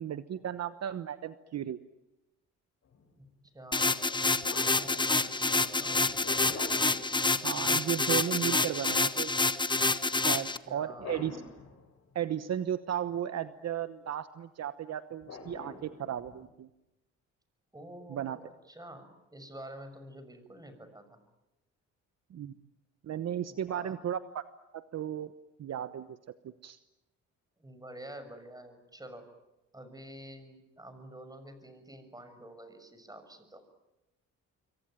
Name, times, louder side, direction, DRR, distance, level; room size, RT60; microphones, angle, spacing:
voice 1, 0.0-1.8 7.4-9.3 10.2-11.4 12.1-16.7 18.1-18.4 22.3-22.5 23.0-24.4 24.7-25.3 25.6-26.2 26.6-26.8, right 10 dB, 60° right, 12 dB, 1.1 m, -35 dB
sound 1, 2.8-3.0 4.4-7.8 10.8-12.2 15.2-16.5, left 4 dB, 55° left, 6.6 m, -45 dB
voice 2, 3.2-6.4 10.3-11.3 17.7-21.2 23.4-24.0 27.6-29.3 29.7-33.6, right 1 dB, 10° right, 9 dB, 6.5 m, -49 dB
sound 2, 3.7-10.6, left 3 dB, 15° left, 1.2 m, -28 dB
26.5 x 23.5 x 9.2 m, 0.96 s
cardioid pair, 90°, 30 cm